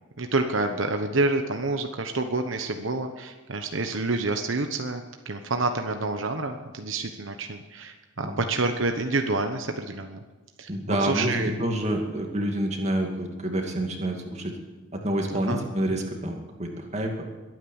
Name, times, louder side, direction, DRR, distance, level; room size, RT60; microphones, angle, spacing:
voice 1, 0.2-10.2 10.6-11.5 15.5-15.6, right 3 dB, 75° right, 5 dB, 1.1 m, -28 dB
voice 2, 10.7-14.5 14.9-17.1, right 1 dB, 35° right, 2 dB, 2.3 m, -28 dB
22.0 x 9.3 x 7.2 m, 1.2 s
head